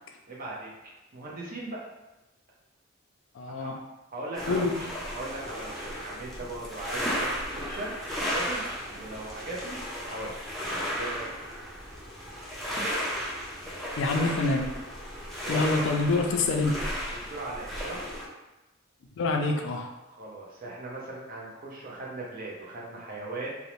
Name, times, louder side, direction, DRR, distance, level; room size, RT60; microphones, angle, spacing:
voice 1, 0.3-0.7 1.1-1.8 3.6-3.8 4.1-4.7 5.0-8.0 8.3-8.6 8.9-9.8 10.1-10.4 11.0-11.3 15.4-15.9 17.1-18.0 20.2-23.6, right 2 dB, 45° right, -4 dB, 0.7 m, -38 dB
voice 2, 3.3-3.8 4.4-4.8 14.0-14.7 15.5-16.9 19.2-19.9, left 3 dB, 65° left, 3 dB, 0.4 m, -26 dB
sound 1, 4.3-18.3, equal, ahead, 0.4 m, -34 dB
2.6 x 2.0 x 3.0 m, 1.0 s
head